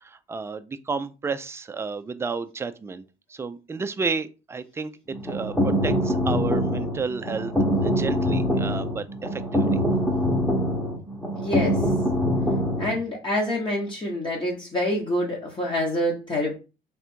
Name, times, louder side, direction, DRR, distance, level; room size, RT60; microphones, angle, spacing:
voice 1, 0.0-3.0 3.3-4.9 5.2-7.5 7.8-9.7, right 4 dB, 15° right, 0.3 m, -31 dB
sound 1, 5.1-13.0, equal, 5° left, 1.0 m, -24 dB
voice 2, 11.3-11.8 12.8-16.6, left 1 dB, 30° left, 1.1 m, -26 dB
3.3 x 2.4 x 4.4 m
cardioid pair, 110°, 17 cm